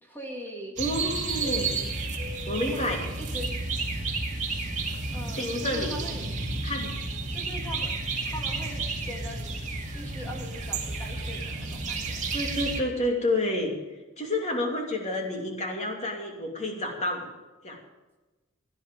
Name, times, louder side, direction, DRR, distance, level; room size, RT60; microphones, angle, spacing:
voice 1, 0.0-0.7 2.7-3.5 5.1-6.5 7.3-9.6 9.9-12.3, equal, 10° left, 0 dB, 2.3 m, -41 dB
voice 2, 0.8-1.7 2.5-3.0 5.4-6.0 6.6-6.9 12.3-13.7 14.2-17.3 17.6-17.8, left 1 dB, 35° left, 2 dB, 2.9 m, -29 dB
sound 1, 0.8-12.8, right 3 dB, 40° right, 2.3 m, -31 dB
16.5 x 10.5 x 5.3 m, 1.2 s
head